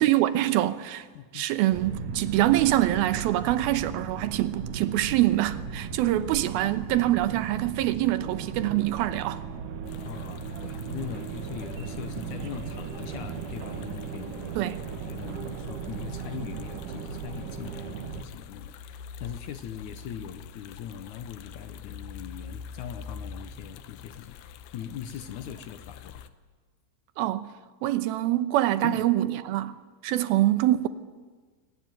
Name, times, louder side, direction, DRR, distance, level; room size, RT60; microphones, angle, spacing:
voice 1, 0.0-1.1 1.3-9.4 14.6-14.8 27.2-27.5 27.8-29.8 30.0-30.9, right 14 dB, 85° right, 2.8 m, -25 dB
voice 2, 1.1-1.5 4.1-4.2 9.9-14.7 15.1-26.2 28.8-29.0, left 9 dB, 70° left, 2.1 m, -41 dB
sound 1, 1.7-18.2, right 6 dB, 65° right, 2.8 m, -37 dB
sound 2, 9.8-26.3, left 6 dB, 85° left, 2.8 m, -46 dB
22.5 x 18.5 x 9.1 m
omnidirectional pair, 4.2 m